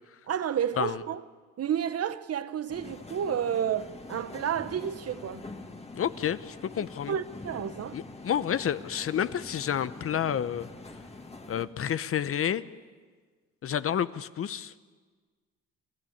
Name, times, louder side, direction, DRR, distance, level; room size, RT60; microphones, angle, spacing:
voice 1, 0.3-1.2 1.6-5.5 6.8-8.0, right 9 dB, 55° right, 0.9 m, -31 dB
sound 1, 2.7-11.7, left 2 dB, 20° left, 2.1 m, -45 dB
voice 2, 6.0-7.1 7.9-10.7 11.5-12.6 13.6-14.7, left 9 dB, 50° left, 0.8 m, -30 dB
29.5 x 13.0 x 8.6 m
cardioid pair, 90°, 30 cm